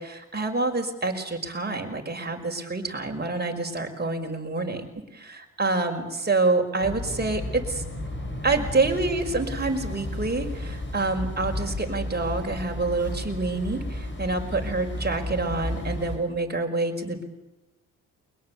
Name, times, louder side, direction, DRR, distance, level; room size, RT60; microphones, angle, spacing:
voice 1, 0.0-4.9 5.1-7.8 8.4-17.2, right 3 dB, 25° right, 3 dB, 5.6 m, -27 dB
sound 1, 6.8-16.2, left 1 dB, 30° left, 7.4 m, -33 dB
22.5 x 21.5 x 8.5 m, 0.99 s
supercardioid pair, 50°, 36 cm